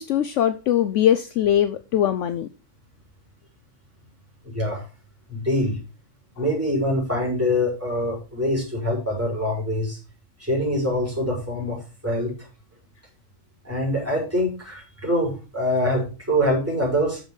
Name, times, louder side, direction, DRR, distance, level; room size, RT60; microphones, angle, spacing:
voice 1, 0.0-2.5, left 10 dB, 70° left, 0.8 m, -21 dB
voice 2, 4.4-4.8 5.3-5.8 6.4-10.0 10.4-12.3 13.6-17.2, equal, 10° right, 4.7 m, -24 dB
7.1 x 6.6 x 5.2 m
omnidirectional pair, 1.4 m